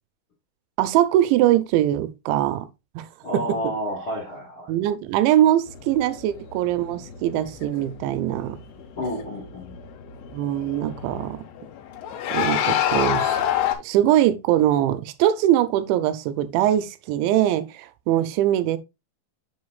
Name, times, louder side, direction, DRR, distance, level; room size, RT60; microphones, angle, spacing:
voice 1, 0.8-2.7 3.0-3.1 4.7-8.6 10.3-11.4 12.3-13.4 13.8-18.8, right 12 dB, 85° right, 2.8 m, -22 dB
voice 2, 3.2-4.7 9.0-9.8, equal, 55° left, 1.5 m, -30 dB
sound 1, 5.7-13.8, left 10 dB, 85° left, 3.4 m, -29 dB
7.4 x 6.3 x 2.4 m
omnidirectional pair, 5.4 m